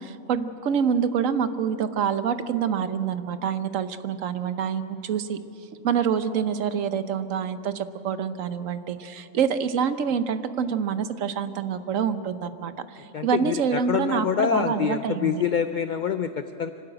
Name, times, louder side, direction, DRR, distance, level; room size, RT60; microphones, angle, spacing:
voice 1, 0.0-5.4 5.8-15.4, right 7 dB, 80° right, 11 dB, 1.2 m, -26 dB
voice 2, 13.1-16.7, left 7 dB, 55° left, 9 dB, 0.6 m, -26 dB
25.0 x 12.5 x 8.9 m, 3.0 s
omnidirectional pair, 1.3 m